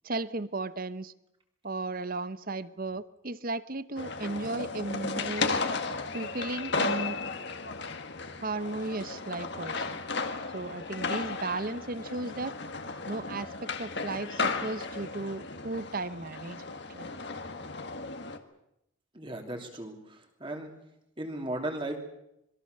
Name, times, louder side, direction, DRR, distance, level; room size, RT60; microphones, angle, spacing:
voice 1, 0.0-1.1 1.6-5.6 6.1-7.2 8.4-10.0 10.5-12.6 13.1-16.6 16.9-17.1, right 2 dB, 40° right, 15 dB, 0.9 m, -35 dB
sound 1, 4.0-18.4, left 4 dB, 50° left, 1.8 m, -35 dB
voice 2, 19.1-20.7 21.2-22.0, right 1 dB, 25° right, 3 dB, 3.1 m, -36 dB
26.5 x 22.0 x 6.7 m, 0.83 s
head